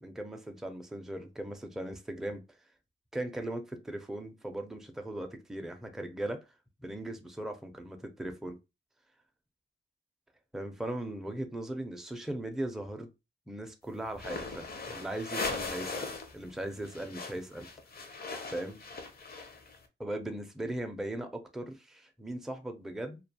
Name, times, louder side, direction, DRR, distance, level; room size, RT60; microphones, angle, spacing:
voice 1, 0.0-2.4 3.1-6.4 6.8-8.6 10.5-13.1 13.5-17.7 18.5-18.8 20.0-23.2, right 1 dB, ahead, 0.4 m, -38 dB
sound 1, 14.1-16.3 16.6-19.8, left 4 dB, 50° left, 0.5 m, -39 dB
2.3 x 2.2 x 2.6 m
wide cardioid pair, 110°, 20 cm